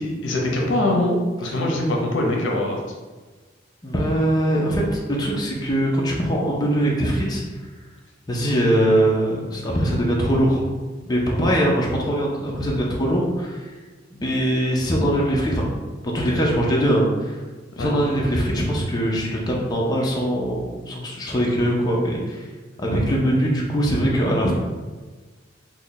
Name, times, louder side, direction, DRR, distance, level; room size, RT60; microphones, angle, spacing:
voice 1, 0.0-2.8 17.8-17.9, left 1 dB, 75° left, 0 dB, 0.6 m, -23 dB
voice 2, 3.8-7.4 8.3-10.7 11.1-13.7 14.1-15.7 16.1-17.4 17.7-22.5 22.8-24.5, equal, 20° left, -3 dB, 0.5 m, -22 dB
3.1 x 2.2 x 3.8 m, 1.3 s
head